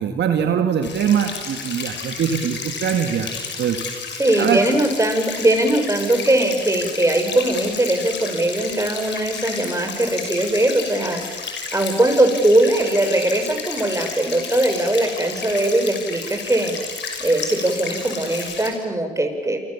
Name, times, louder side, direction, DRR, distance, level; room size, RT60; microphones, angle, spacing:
voice 1, 0.0-3.3 3.6-3.8 4.4-4.8, right 8 dB, 60° right, 6 dB, 2.2 m, -22 dB
sound 1, 0.8-18.7, left 5 dB, 60° left, 6.0 m, -32 dB
voice 2, 4.2-11.4 11.7-16.7 17.2-19.6, right 1 dB, 15° right, 5 dB, 6.8 m, -20 dB
28.5 x 25.5 x 7.4 m, 1.5 s
hypercardioid pair, 50°, 20 cm